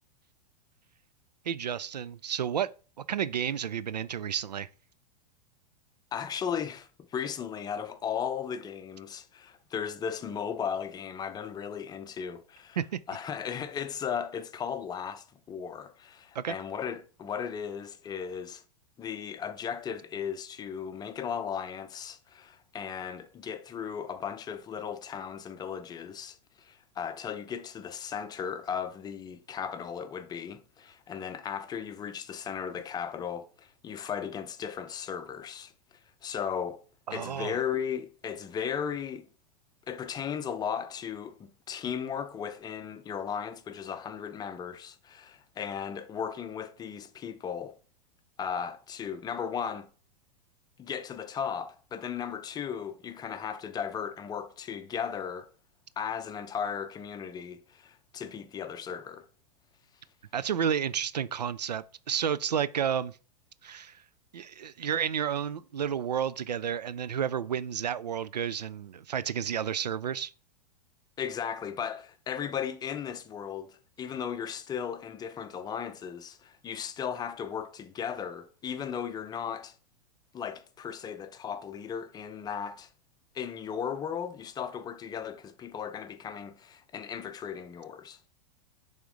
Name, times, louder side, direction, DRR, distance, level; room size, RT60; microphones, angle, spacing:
voice 1, 1.5-2.7 3.0-4.7 12.8-13.0 16.3-16.5 37.1-37.5 60.3-63.2 63.6-64.0 64.3-70.3, right 8 dB, 80° right, 0.4 m, -31 dB
voice 2, 6.1-12.8 13.1-18.6 19.0-35.7 36.2-36.9 37.1-39.3 39.9-41.4 41.7-47.8 48.4-49.9 50.8-55.5 56.0-59.3 71.2-79.7 80.3-82.9 83.3-88.3, left 7 dB, 20° left, 0.6 m, -36 dB
6.1 x 3.6 x 4.7 m
figure-of-eight pair, 95°, 21 cm